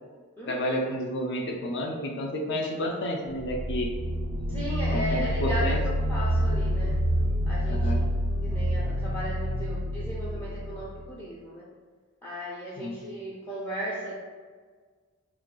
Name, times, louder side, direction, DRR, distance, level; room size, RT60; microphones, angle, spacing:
voice 1, 0.5-3.9 4.9-5.8 7.7-8.0 12.8-13.0, equal, 55° left, 1 dB, 0.6 m, -30 dB
sound 1, 3.3-11.1, equal, 75° right, 0.4 m, -28 dB
sound 2, 4.5-10.7, equal, 30° left, 1.3 m, -39 dB
voice 2, 4.5-7.0 7.5-7.9 8.4-11.7 12.2-14.1, equal, 10° left, -6 dB, 0.4 m, -36 dB
3.9 x 2.4 x 3.2 m, 1.5 s
head